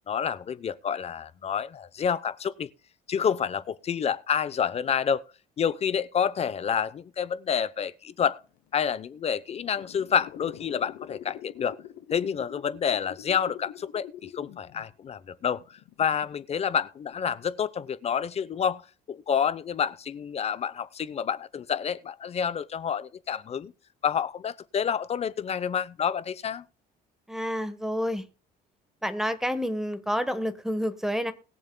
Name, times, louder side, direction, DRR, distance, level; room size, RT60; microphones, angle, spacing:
voice 1, 0.1-2.7 3.1-5.2 5.6-8.4 8.7-11.8 12.1-15.6 16.0-18.8 19.1-23.7 24.0-26.7, left 7 dB, 40° left, 0.7 m, -28 dB
sound 1, 8.7-8.8 9.3-14.9 15.3-16.6 17.1-17.2, left 11 dB, 70° left, 0.8 m, -44 dB
voice 2, 27.3-28.3 29.0-31.3, equal, 5° right, 1.1 m, -29 dB
20.5 x 7.3 x 2.2 m
cardioid pair, 110°, 17 cm